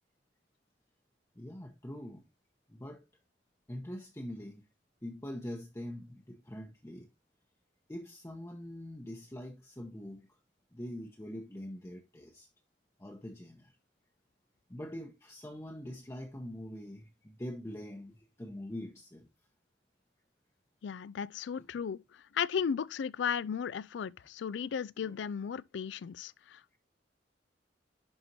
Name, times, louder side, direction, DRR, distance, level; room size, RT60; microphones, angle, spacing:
voice 1, 1.3-2.2 2.7-3.0 3.7-4.7 5.0-7.1 7.9-10.4 10.7-12.5 13.0-13.7 14.7-19.3, left 1 dB, 15° left, 0.8 m, -44 dB
voice 2, 20.8-26.8, left 7 dB, 75° left, 0.4 m, -35 dB
11.0 x 4.3 x 2.7 m
head